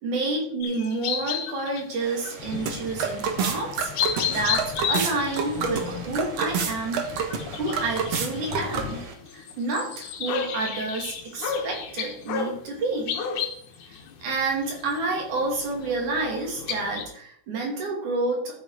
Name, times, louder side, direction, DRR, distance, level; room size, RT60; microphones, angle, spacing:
voice 1, 0.0-9.0 9.3-13.2 13.8-18.6, right 3 dB, 85° right, 0 dB, 4.4 m, -29 dB
sound 1, 0.6-2.0 2.3-2.7 3.1-3.3 3.8-12.6 13.1-17.1, left 7 dB, 90° left, 2.7 m, -32 dB
sound 2, 2.0-9.1, right 6 dB, 65° right, 2.4 m, -30 dB
sound 3, 2.4-9.0, left 8 dB, 70° left, 1.4 m, -41 dB
11.5 x 7.2 x 5.0 m, 0.65 s
omnidirectional pair, 3.4 m